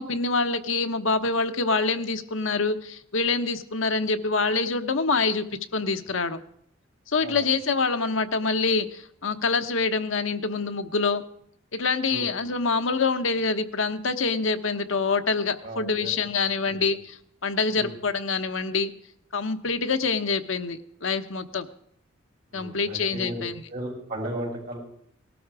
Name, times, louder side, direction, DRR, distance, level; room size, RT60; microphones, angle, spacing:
voice 1, 0.0-5.5 5.7-6.4 7.1-11.2 11.7-18.9 19.3-21.7 22.5-23.6, left 4 dB, 70° left, 8 dB, 1.0 m, -26 dB
voice 2, 15.6-16.1 16.7-16.9 17.7-17.9 22.5-23.4 23.7-24.8, right 1 dB, 40° right, -3 dB, 6.9 m, -35 dB
18.5 x 12.5 x 4.8 m, 0.68 s
head